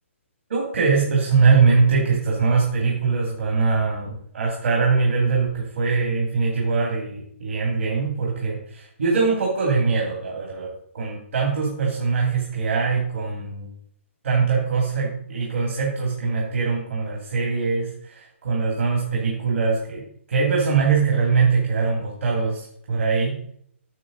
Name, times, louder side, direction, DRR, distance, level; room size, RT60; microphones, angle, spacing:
voice 1, 0.5-10.7 10.9-13.7 14.2-23.4, right 4 dB, 70° right, -2 dB, 2.6 m, -22 dB
9.3 x 6.3 x 3.9 m, 0.64 s
hypercardioid pair, 155°, 7 cm